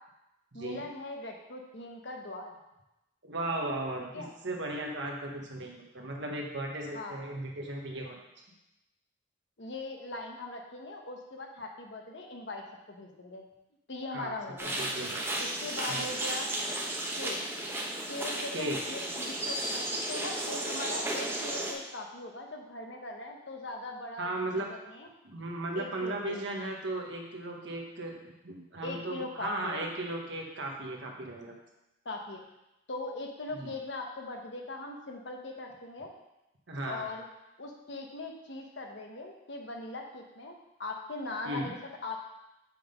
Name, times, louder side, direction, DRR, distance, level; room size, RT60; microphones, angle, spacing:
voice 1, 0.5-2.6 4.1-4.3 6.9-7.2 9.6-13.4 13.9-14.8 15.4-16.8 17.2-17.5 18.1-25.1 25.7-26.4 28.8-29.8 32.0-32.4 32.9-36.1 36.8-37.3 37.6-42.3, left 2 dB, 70° left, 2 dB, 1.1 m, -40 dB
voice 2, 3.2-8.2 14.1-14.3 14.8-15.3 15.9-16.0 18.5-18.8 24.2-24.7 25.2-28.2 28.4-31.5 33.6-33.7 36.7-37.1 41.4-41.7, right 1 dB, 75° right, 0 dB, 1.3 m, -36 dB
sound 1, 14.6-21.7, right 1 dB, 15° right, 0.9 m, -34 dB
7.7 x 3.9 x 5.1 m, 0.93 s
head